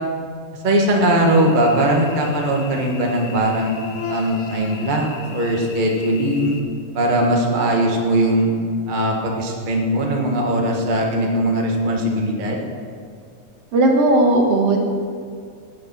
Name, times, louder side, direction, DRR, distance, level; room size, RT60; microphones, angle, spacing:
voice 1, 0.6-3.8 4.1-6.5 6.9-8.5 8.9-12.6, right 1 dB, 40° right, 0 dB, 0.6 m, -19 dB
Cricket / Buzz, 1.1-6.6, left 5 dB, 85° left, 2.7 m, -36 dB
voice 2, 13.7-14.8, right 2 dB, 60° right, 1 dB, 2.1 m, -16 dB
18.5 x 6.7 x 6.1 m, 2.2 s
omnidirectional pair, 3.6 m